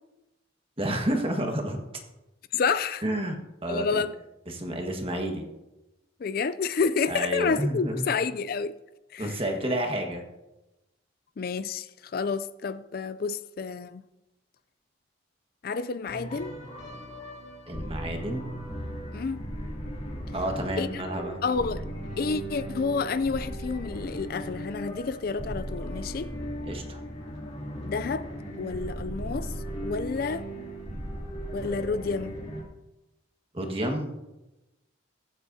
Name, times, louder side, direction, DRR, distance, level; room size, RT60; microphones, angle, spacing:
voice 1, 0.8-1.8 3.0-3.3 3.6-4.0 4.5-5.4 7.1-8.1 9.2-10.2 17.7-18.5 20.3-21.4 26.6-27.0 33.5-34.1, right 1 dB, 30° right, 1.5 m, -30 dB
voice 2, 2.5-3.0 3.7-4.2 6.2-8.8 9.1-9.4 11.4-14.1 15.6-16.5 19.1-19.5 20.8-21.0 21.4-21.9 22.2-26.3 27.8-28.3 28.6-29.6 29.8-30.5 31.5-32.4, left 5 dB, 50° left, 0.4 m, -29 dB
sound 1, 16.1-32.6, equal, 35° left, 2.6 m, -37 dB
23.0 x 8.1 x 2.8 m
head